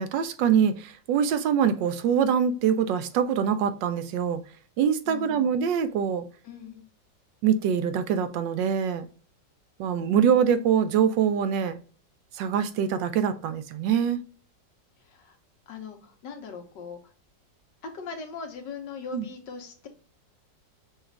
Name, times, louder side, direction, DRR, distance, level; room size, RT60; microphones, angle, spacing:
voice 1, 0.0-4.4 4.8-6.2 7.4-9.0 9.8-11.8 12.3-14.2 19.1-19.3, right 8 dB, 80° right, 1.3 m, -24 dB
voice 2, 5.1-5.4 6.4-6.8 15.0-15.4 15.7-17.0 17.8-19.9, left 5 dB, 75° left, 1.5 m, -40 dB
6.1 x 2.4 x 3.3 m
omnidirectional pair, 2.0 m